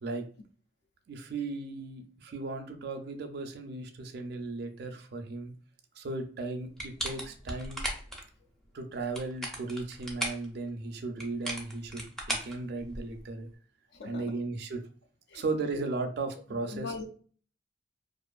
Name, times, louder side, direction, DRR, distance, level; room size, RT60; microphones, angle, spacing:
voice 1, 1.1-5.5 6.0-7.8 8.7-13.5 14.1-14.8 15.3-16.9, right 3 dB, 60° right, 5 dB, 0.4 m, -36 dB
sound 1, 6.8-8.2 9.0-10.5 11.2-13.2, right 1 dB, ahead, 0.5 m, -36 dB
voice 2, 13.9-14.4 15.3-15.8 16.5-17.1, left 3 dB, 65° left, 5 dB, 0.3 m, -41 dB
2.5 x 2.4 x 2.2 m, 0.43 s
head